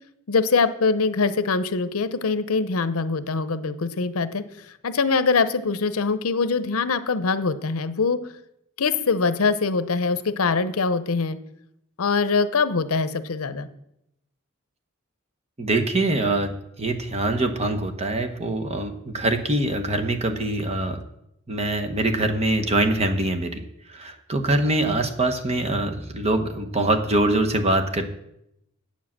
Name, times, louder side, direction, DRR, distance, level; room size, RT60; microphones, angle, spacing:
voice 1, 0.3-4.4 4.8-8.2 8.8-11.4 12.0-13.7, left 4 dB, 75° left, 12 dB, 0.7 m, -23 dB
voice 2, 15.6-21.0 21.5-23.6 23.9-28.0, right 2 dB, 30° right, 6 dB, 1.0 m, -24 dB
9.0 x 7.4 x 7.4 m, 0.81 s
head